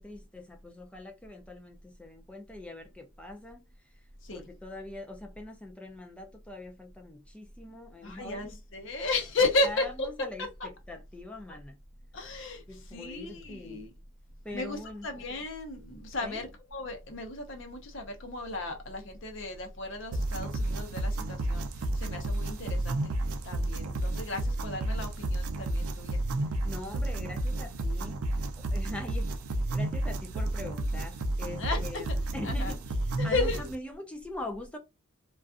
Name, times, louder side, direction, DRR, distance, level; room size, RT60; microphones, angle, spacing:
voice 1, 0.0-3.7 4.3-8.6 9.6-11.8 12.7-13.8 14.4-15.1 16.2-16.4 26.6-34.8, left 1 dB, 5° left, 0.3 m, -43 dB
voice 2, 8.0-10.1 10.6-10.7 12.1-13.9 14.5-23.1 23.4-26.2 31.6-31.8 32.4-32.7 33.2-33.7, left 2 dB, 55° left, 0.7 m, -34 dB
sound 1, 20.1-33.7, right 1 dB, 80° right, 0.4 m, -31 dB
2.4 x 2.3 x 2.4 m
head